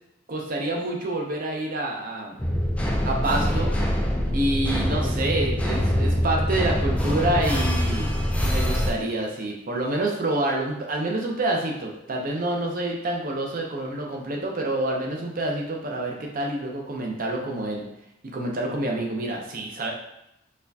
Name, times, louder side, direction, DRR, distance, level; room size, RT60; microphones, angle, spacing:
voice 1, 0.3-2.4 3.0-3.9 4.3-17.9 18.3-19.9, right 1 dB, 45° right, 0 dB, 0.6 m, -27 dB
sound 1, 2.4-8.9, equal, 5° left, 0.3 m, -24 dB
4.2 x 2.3 x 2.7 m, 0.84 s
head